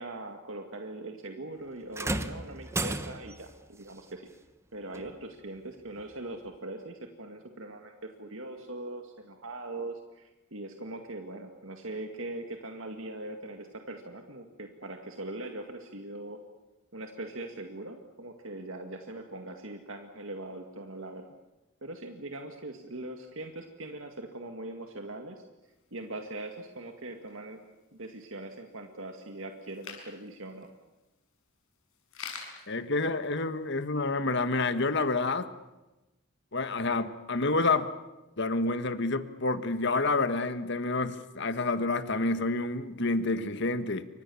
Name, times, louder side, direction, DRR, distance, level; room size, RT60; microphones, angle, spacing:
voice 1, 0.0-4.3 4.7-16.4 16.9-21.3 21.8-25.4 25.9-27.6 27.9-30.7, right 2 dB, 65° right, 2.1 m, -41 dB
sound 1, 1.9-3.5 4.9-5.1 6.0-6.1, right 2 dB, 15° right, 1.1 m, -33 dB
sound 2, 25.6-33.8, left 6 dB, 75° left, 6.5 m, -50 dB
voice 2, 32.7-35.5 36.5-37.9 38.4-44.1, left 3 dB, 55° left, 1.6 m, -28 dB
29.0 x 25.0 x 7.1 m
head